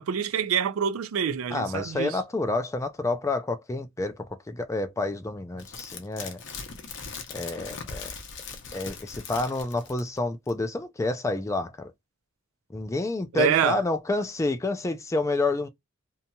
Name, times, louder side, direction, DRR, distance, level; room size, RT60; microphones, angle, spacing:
voice 1, 0.0-2.2 13.3-13.8, right 7 dB, 85° right, 0.4 m, -26 dB
voice 2, 1.5-6.4 7.3-8.1 8.7-11.9 12.7-15.7, left 2 dB, 15° left, 0.4 m, -29 dB
sound 1, 5.6-10.2 10.5-10.6, left 5 dB, 60° left, 0.7 m, -40 dB
2.8 x 2.7 x 2.2 m
head